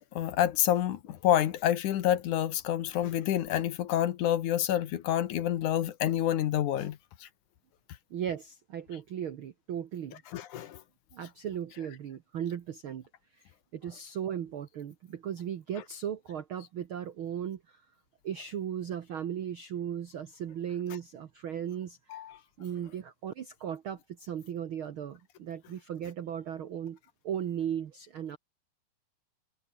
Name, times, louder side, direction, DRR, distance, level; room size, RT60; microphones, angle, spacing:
voice 1, 0.0-7.3 10.3-10.8 22.1-22.4, left 11 dB, 65° left, 2.5 m, -28 dB
voice 2, 8.1-10.2 11.1-13.0 13.3-17.8 18.2-22.2 22.6-27.0 27.2-28.4, right 9 dB, 70° right, 1.2 m, -37 dB
omnidirectional pair, 4.1 m